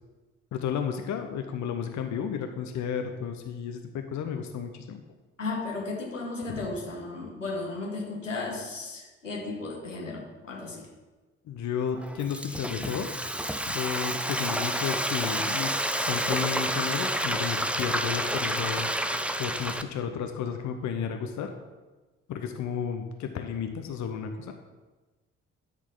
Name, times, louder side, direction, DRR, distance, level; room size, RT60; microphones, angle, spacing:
voice 1, 0.5-5.0 6.5-6.7 11.5-13.1 13.7-15.7 16.0-18.9 19.4-21.5 22.3-24.5, left 7 dB, 50° left, 6 dB, 0.9 m, -32 dB
voice 2, 5.4-10.9, left 3 dB, 90° left, -3 dB, 1.4 m, -35 dB
Frying (food), 11.9-19.8, right 1 dB, 5° right, 0.6 m, -29 dB
11.5 x 6.4 x 3.8 m, 1.2 s
figure-of-eight pair, 40°, 37 cm